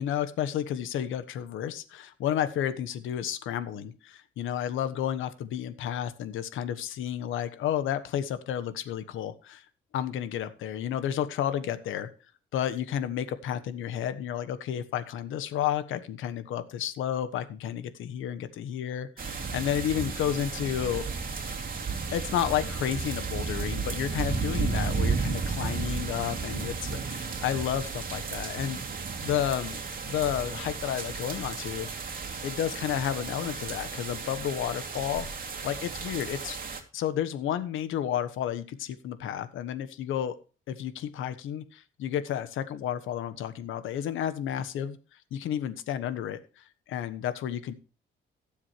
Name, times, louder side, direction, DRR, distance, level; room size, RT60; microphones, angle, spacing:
voice 1, 0.0-9.6 9.9-12.1 12.5-21.6 22.1-32.1 32.4-35.3 35.6-36.6 36.9-40.3 40.7-45.0 45.3-47.7, left 10 dB, 85° left, 13 dB, 1.3 m, -31 dB
sound 1, 19.2-36.8, right 5 dB, 45° right, 2.7 m, -33 dB
17.5 x 7.4 x 3.2 m, 0.35 s
cardioid pair, 90°, 20 cm